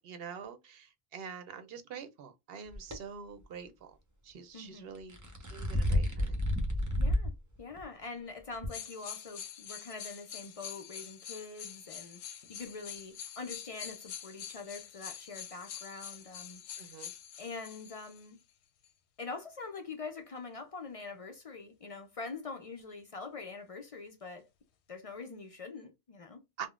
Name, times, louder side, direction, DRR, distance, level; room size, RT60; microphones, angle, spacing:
voice 1, 0.0-4.0 4.2-6.3 16.8-17.1 26.6-26.7, right 6 dB, 70° right, 0.7 m, -46 dB
sound 1, 2.7-3.0 4.9-7.3 7.8-7.9 8.6-8.7, left 1 dB, 20° right, 0.5 m, -30 dB
voice 2, 4.5-4.9 7.0-17.0 17.4-18.4 19.2-24.5 24.9-26.4, left 4 dB, 50° left, 0.4 m, -44 dB
sound 2, 8.7-18.3 18.8-18.9, left 9 dB, 80° left, 0.9 m, -46 dB
3.6 x 2.1 x 2.3 m
omnidirectional pair, 1.1 m